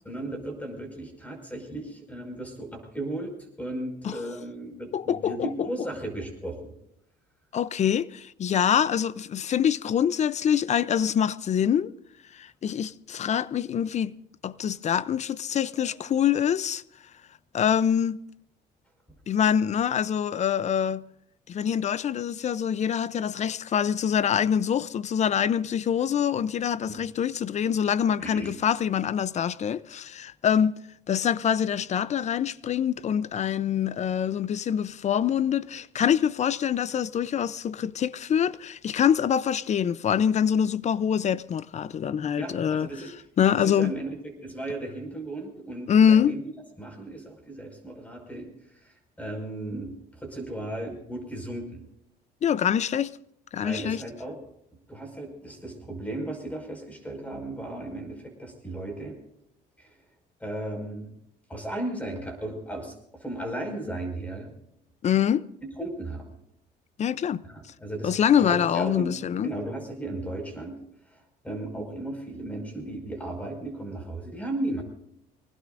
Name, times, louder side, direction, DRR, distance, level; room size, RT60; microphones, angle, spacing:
voice 1, 0.0-6.7 15.8-16.0 26.9-27.0 28.2-28.5 42.4-43.1 43.5-46.4 46.8-51.8 53.6-54.4 54.9-59.2 59.8-60.0 60.4-61.1 61.5-64.5 65.6-66.3 67.4-69.1 69.4-70.8 71.1-74.8, right 1 dB, 10° left, 5.5 m, -36 dB
voice 2, 4.9-5.7 7.5-11.9 12.3-14.2 14.4-16.8 17.5-18.2 19.3-21.0 21.5-30.7 31.1-42.9 43.4-43.9 45.9-46.3 52.4-53.2 53.5-54.0 65.0-65.5 67.0-67.4 68.0-69.5, left 8 dB, 45° left, 0.6 m, -25 dB
24.5 x 19.5 x 2.6 m
cardioid pair, 110°, 17 cm